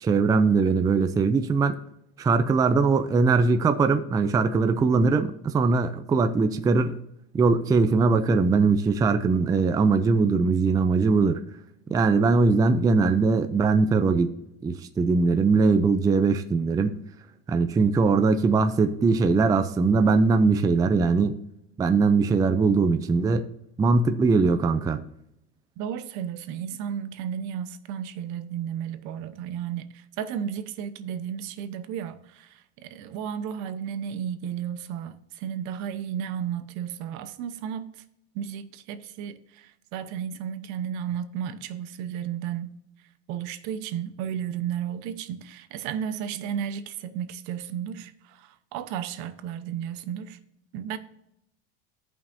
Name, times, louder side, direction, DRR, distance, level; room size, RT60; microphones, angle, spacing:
voice 1, 0.0-1.7 2.2-7.0 7.3-11.4 11.9-14.3 14.6-17.0 17.5-21.3 21.8-23.5 23.8-25.0, right 4 dB, 10° right, 0.4 m, -21 dB
voice 2, 25.8-37.9 38.3-42.7 43.3-50.4 50.7-51.0, right 9 dB, 65° right, 0.8 m, -33 dB
14.5 x 5.5 x 2.6 m
supercardioid pair, 130°, 31 cm